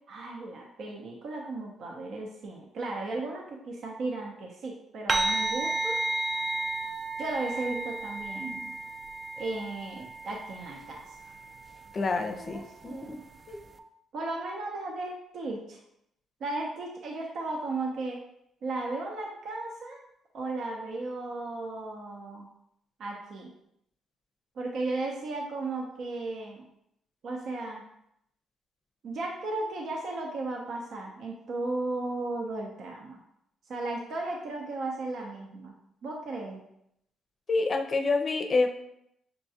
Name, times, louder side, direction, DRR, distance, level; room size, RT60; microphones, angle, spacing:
voice 1, 0.1-6.0 7.2-8.7 9.4-11.2 12.4-13.2 14.1-15.8 16.4-18.2 18.6-20.0 20.3-22.5 23.0-23.5 24.6-26.6 27.2-27.8 29.0-33.2 33.7-35.7 36.0-36.6, right 2 dB, 65° right, 0 dB, 0.7 m, -35 dB
sound 1, 5.1-13.8, right 2 dB, 30° right, 0.4 m, -34 dB
voice 2, 11.9-13.2 13.5-13.6 37.5-38.7, left 3 dB, 40° left, 5 dB, 0.5 m, -28 dB
6.7 x 2.3 x 2.7 m, 0.77 s
cardioid pair, 90°, 0 cm